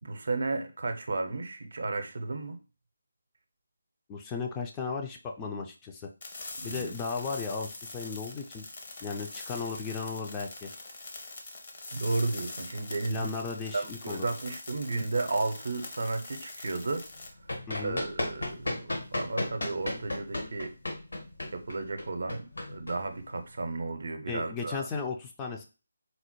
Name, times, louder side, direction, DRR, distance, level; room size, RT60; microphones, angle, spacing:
voice 1, 0.0-2.6 6.6-6.9 11.9-13.3 13.7-17.4 17.8-20.7 21.5-24.9, right 3 dB, 60° right, 7 dB, 0.6 m, -33 dB
voice 2, 4.1-6.1 6.6-8.6 9.0-10.7 13.1-14.3 17.7-18.0 24.3-25.7, left 5 dB, 15° left, 2 dB, 0.3 m, -35 dB
sound 1, 6.2-17.3, left 3 dB, 45° left, 0.7 m, -43 dB
Run, 17.1-23.6, left 1 dB, 75° left, 1.1 m, -35 dB
4.1 x 2.1 x 2.9 m, 0.32 s
figure-of-eight pair, 155°, 0 cm